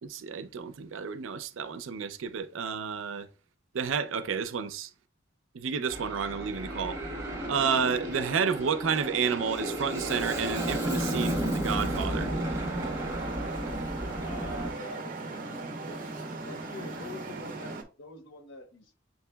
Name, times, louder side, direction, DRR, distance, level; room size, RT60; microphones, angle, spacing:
voice 1, 0.0-3.3 3.7-4.9 5.5-7.0 7.5-12.3, right 6 dB, 85° right, 0.5 m, -30 dB
Aircraft, 5.9-14.7, right 1 dB, 15° right, 1.2 m, -33 dB
Traffic noise roadway noise, 11.8-17.8, right 3 dB, 45° right, 0.7 m, -38 dB
voice 2, 14.2-16.2 16.4-18.9, left 1 dB, 75° left, 1.0 m, -45 dB
7.4 x 2.9 x 2.2 m
head